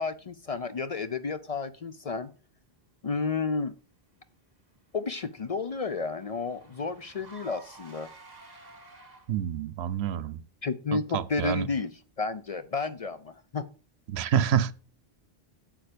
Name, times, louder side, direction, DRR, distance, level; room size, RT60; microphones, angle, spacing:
voice 1, 0.0-2.3 3.0-3.7 4.9-8.1 10.6-11.9 12.2-13.7, left 4 dB, 45° left, 0.5 m, -31 dB
Car / Engine, 4.6-9.6, right 3 dB, 40° right, 1.9 m, -53 dB
voice 2, 9.3-10.4 10.9-11.7 14.1-14.7, right 9 dB, 85° right, 0.9 m, -27 dB
8.8 x 7.4 x 5.1 m
omnidirectional pair, 1.0 m